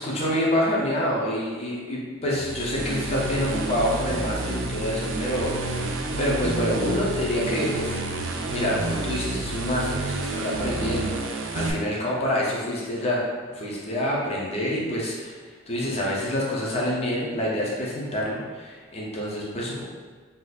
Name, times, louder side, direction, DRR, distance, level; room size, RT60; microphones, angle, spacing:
voice 1, 0.0-5.9 6.2-8.0 8.5-15.4 15.7-19.8, equal, 30° left, -4 dB, 0.7 m, -27 dB
sound 1, 2.3-11.7, right 2 dB, 80° right, 0.4 m, -30 dB
2.7 x 2.5 x 4.0 m, 1.5 s
head